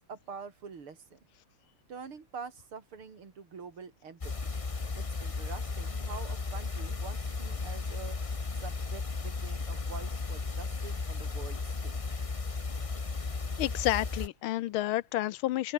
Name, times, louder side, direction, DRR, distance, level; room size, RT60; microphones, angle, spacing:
voice 1, 0.1-1.2 1.9-4.5 5.0-8.2 8.6-12.2, right 5 dB, 75° right, 3.8 m, -46 dB
sound 1, 4.2-14.3, left 4 dB, 30° left, 0.6 m, -35 dB
voice 2, 13.6-15.7, left 15 dB, 80° left, 1.4 m, -30 dB
open air
omnidirectional pair, 2.4 m